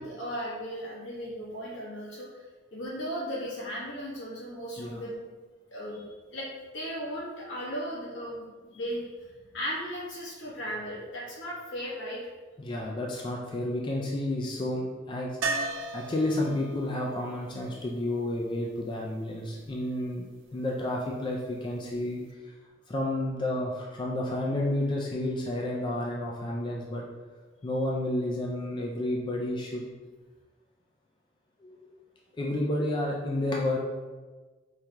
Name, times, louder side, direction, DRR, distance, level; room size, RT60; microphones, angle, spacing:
voice 1, 0.0-2.3 2.7-5.2 5.7-6.1 6.3-12.2, equal, 80° left, -6 dB, 1.3 m, -36 dB
voice 2, 12.6-15.3 15.9-20.2 20.5-22.4 22.9-27.0 27.6-29.9 31.6-31.9 32.4-33.8, left 1 dB, 25° left, -2 dB, 0.3 m, -31 dB
sound 1, 15.4-19.3 22.0-22.1 22.3-22.4, right 3 dB, 85° right, 0.5 m, -36 dB
4.7 x 2.2 x 2.9 m, 1.3 s
head